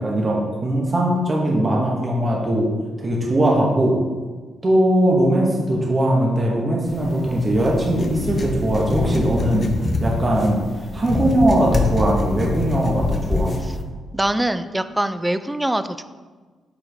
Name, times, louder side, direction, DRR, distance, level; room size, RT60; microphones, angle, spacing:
voice 1, 0.0-2.7 3.0-4.0 4.6-9.7 10.0-10.6 10.9-13.5, right 1 dB, 25° right, -2 dB, 1.1 m, -20 dB
sound 1, 6.9-13.8, left 2 dB, 30° left, 0.7 m, -25 dB
voice 2, 14.1-16.0, right 1 dB, 10° right, 11 dB, 0.3 m, -23 dB
8.5 x 4.6 x 3.5 m, 1.4 s
cardioid pair, 115°, 0 cm